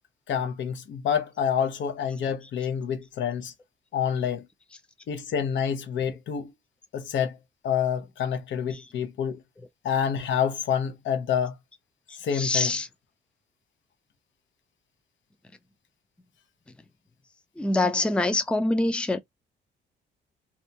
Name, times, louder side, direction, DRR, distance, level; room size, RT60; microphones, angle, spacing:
voice 1, 0.3-3.5 3.9-4.5 5.1-6.5 6.9-7.4 7.6-9.4 9.8-11.5 12.2-12.7, left 8 dB, 70° left, 0.8 m, -27 dB
voice 2, 12.1-12.9 17.6-19.2, left 2 dB, 5° left, 0.5 m, -25 dB
2.7 x 2.2 x 2.7 m
cardioid pair, 90°, 20 cm